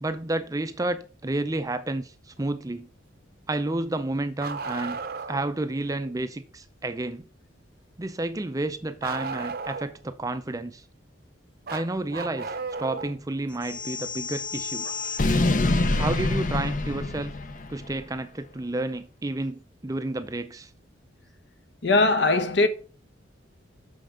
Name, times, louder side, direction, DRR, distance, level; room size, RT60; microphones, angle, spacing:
voice 1, 0.0-2.9 3.5-5.0 5.3-7.3 8.0-10.8 11.7-14.9 16.0-17.4 17.7-20.7, right 2 dB, 20° right, 0.5 m, -30 dB
Bark, 4.4-5.5 9.0-10.1 11.7-13.2 14.8-14.9 16.9-17.0 18.1-18.2, right 4 dB, 50° right, 0.7 m, -34 dB
sound 1, 13.6-17.9, left 2 dB, 45° left, 0.7 m, -26 dB
voice 2, 21.8-22.7, left 2 dB, 65° left, 1.0 m, -20 dB
6.4 x 5.6 x 5.0 m
head